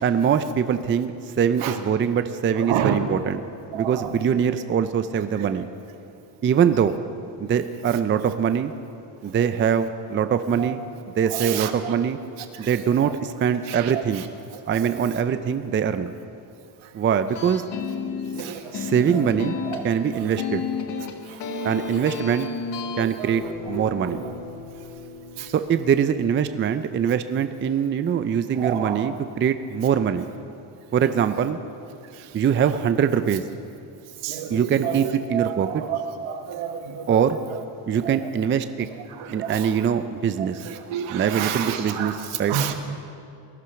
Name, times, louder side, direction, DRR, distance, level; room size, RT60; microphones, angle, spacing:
voice 1, 0.0-1.1 1.4-3.4 3.7-5.7 6.4-6.9 7.4-8.7 9.2-10.8 11.2-12.2 12.6-14.3 14.7-16.1 16.9-17.6 18.7-19.6 19.8-20.6 21.6-22.5 23.0-24.2 25.5-30.3 30.9-31.6 32.3-33.4 34.5-35.8 37.1-37.4 37.9-38.9 39.3-40.6 41.1-42.6, right 8 dB, 25° right, 10 dB, 0.5 m, -23 dB
voice 2, 2.7-3.0 3.7-4.1 10.6-10.7 11.3-11.9 12.6-12.8 13.7-13.9 14.9-15.0 18.4-18.7 19.1-19.2 19.7-19.8 23.0-23.3 23.7-23.8 25.4-25.5 28.6-29.1 34.2-37.2 38.0-38.2 39.2-39.7 40.9-42.1 42.5-42.7, right 9 dB, 75° right, 6 dB, 1.5 m, -29 dB
sound 1, 17.3-23.1, left 5 dB, 55° left, 1.3 m, -31 dB
sound 2, 23.3-26.4, left 3 dB, 10° left, 2.4 m, -38 dB
19.0 x 11.5 x 5.8 m, 2.6 s
cardioid pair, 125°, 49 cm